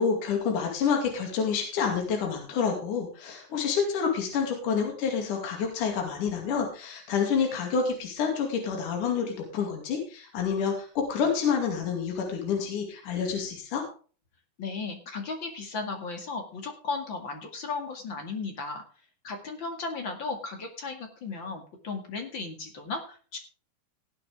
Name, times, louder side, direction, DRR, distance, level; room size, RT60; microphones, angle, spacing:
voice 1, 0.0-13.8, left 6 dB, 60° left, 2 dB, 3.9 m, -28 dB
voice 2, 14.6-18.8 19.2-23.4, left 4 dB, 40° left, 4 dB, 2.3 m, -35 dB
18.0 x 8.7 x 3.6 m, 0.39 s
omnidirectional pair, 4.1 m